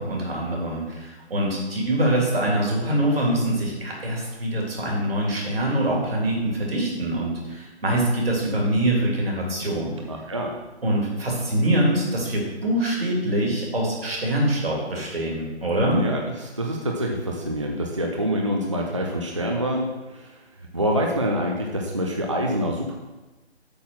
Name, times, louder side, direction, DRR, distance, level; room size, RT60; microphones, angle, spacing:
voice 1, 0.0-10.0 10.8-16.0, right 1 dB, 60° right, -2 dB, 2.9 m, -24 dB
voice 2, 10.1-10.6 15.8-20.3 20.7-23.0, equal, 30° right, 0 dB, 0.5 m, -26 dB
8.5 x 4.0 x 6.1 m, 1.1 s
figure-of-eight pair, 155°, 34 cm